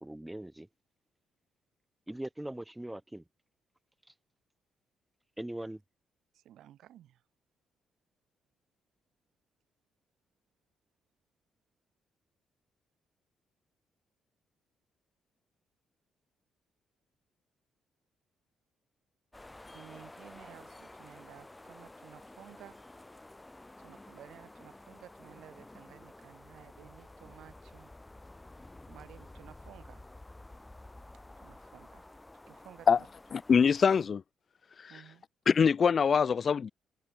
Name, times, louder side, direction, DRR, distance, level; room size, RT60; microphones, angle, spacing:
voice 1, 0.0-0.7 2.1-3.2 5.4-5.8, right 1 dB, 10° right, 0.5 m, -40 dB
voice 2, 6.3-7.2 19.7-22.8 23.8-27.9 28.9-30.1 31.4-32.0 32.5-33.1 34.9-35.2, right 12 dB, 75° right, 4.3 m, -54 dB
sound 1, 19.3-34.1, left 2 dB, 15° left, 1.8 m, -52 dB
voice 3, 33.3-34.2 34.8-34.9 35.5-36.7, left 6 dB, 45° left, 0.8 m, -24 dB
cardioid pair, 90°, 0 cm